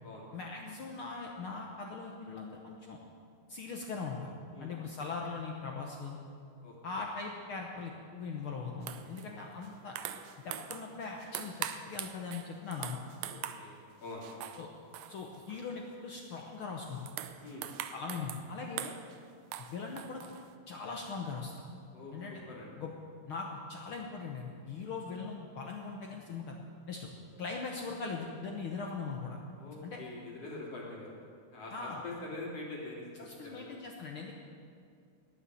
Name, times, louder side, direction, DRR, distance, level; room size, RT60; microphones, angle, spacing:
voice 1, 0.3-3.0 3.5-4.3 4.6-6.2 6.8-9.9 10.4-13.0 14.6-14.7 15.1-17.1 17.9-18.9 19.7-20.2 20.7-21.5 22.1-22.4 22.8-22.9 23.3-26.6 26.9-27.1 27.4-29.4 29.8-30.0 31.7-32.0 33.2-34.3, left 4 dB, 75° left, 1 dB, 1.2 m, -40 dB
sound 1, 8.8-9.3 9.6-10.9 11.2-13.6 14.1-14.7 14.9-15.6 16.1-16.4 16.8-18.4 18.8-19.2 19.5-20.5, right 11 dB, 85° right, 2.4 m, -42 dB
voice 2, 13.3-14.6 17.4-17.7 21.9-22.7 29.6-31.1 31.5-33.7, left 2 dB, 50° left, -3 dB, 3.3 m, -45 dB
19.5 x 7.0 x 7.7 m, 2.3 s
omnidirectional pair, 3.8 m